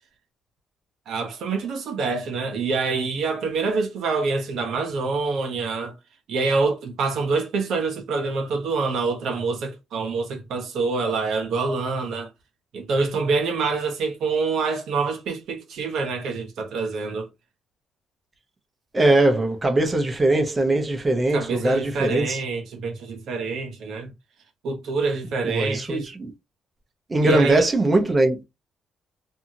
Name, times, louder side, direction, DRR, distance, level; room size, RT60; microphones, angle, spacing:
voice 1, 1.1-5.9 6.3-12.3 12.7-17.3 21.3-24.1 24.6-26.1 27.2-27.7, right 4 dB, 75° right, 0.7 m, -26 dB
voice 2, 18.9-22.4 25.4-26.3 27.1-28.4, right 2 dB, 25° right, 0.7 m, -21 dB
2.7 x 2.4 x 2.7 m
cardioid pair, 90°, 0 cm